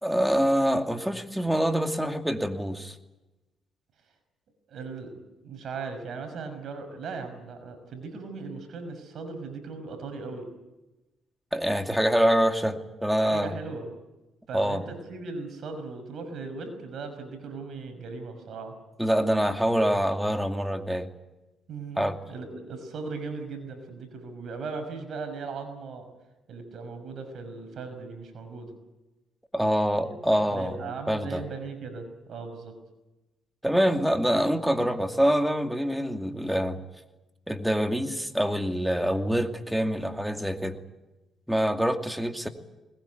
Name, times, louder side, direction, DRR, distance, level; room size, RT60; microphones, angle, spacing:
voice 1, 0.0-3.0 11.5-13.6 14.5-14.8 19.0-21.1 22.0-22.2 29.5-31.4 33.6-36.8 37.5-40.8 41.5-42.5, equal, 5° right, 6 dB, 2.5 m, -25 dB
voice 2, 4.7-5.1 5.4-10.5 13.2-13.9 14.5-18.8 21.7-26.1 26.5-28.7 30.0-30.1 30.5-32.7, right 4 dB, 65° right, 7 dB, 5.9 m, -38 dB
21.5 x 20.5 x 9.5 m, 1.0 s
cardioid pair, 80°, 0 cm